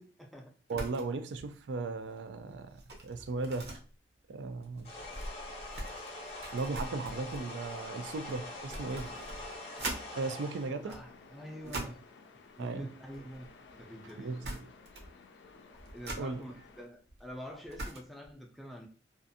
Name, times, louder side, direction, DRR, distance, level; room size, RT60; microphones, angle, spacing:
voice 1, 0.0-0.5 10.8-12.0 12.3-14.5 15.9-18.9, equal, ahead, 0.4 m, -47 dB
sound 1, 0.7-1.1 1.4-1.6 2.0-10.1 10.7-12.1 13.0-13.8 14.1-14.2 14.4-15.2 15.5-18.3, right 1 dB, 65° right, 0.7 m, -44 dB
voice 2, 0.7-3.7 4.3-4.9 6.5-9.1 10.2-11.0 11.6-11.9 12.6-12.9 14.2-14.7 16.2-16.4, right 3 dB, 90° right, 0.4 m, -37 dB
sound 2, 4.8-10.7, left 2 dB, 35° left, 0.6 m, -44 dB
sound 3, 7.8-16.9, left 4 dB, 80° left, 0.4 m, -56 dB
2.5 x 2.4 x 2.6 m
head